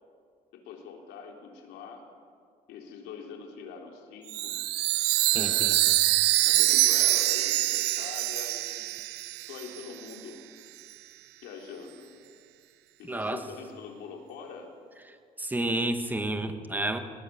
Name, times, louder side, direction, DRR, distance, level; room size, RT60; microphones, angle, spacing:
voice 1, 0.5-2.0 2.7-4.6 5.3-5.8 6.4-9.0 9.5-10.4 11.4-12.1 13.0-14.7, left 5 dB, 85° left, 2 dB, 3.8 m, -43 dB
Chime, 4.3-9.8, right 18 dB, 85° right, 0.6 m, -25 dB
voice 2, 5.3-5.7 13.0-13.4 15.4-17.0, right 1 dB, 10° right, 7 dB, 1.7 m, -30 dB
20.0 x 19.0 x 7.2 m, 2.1 s
cardioid pair, 110°, 17 cm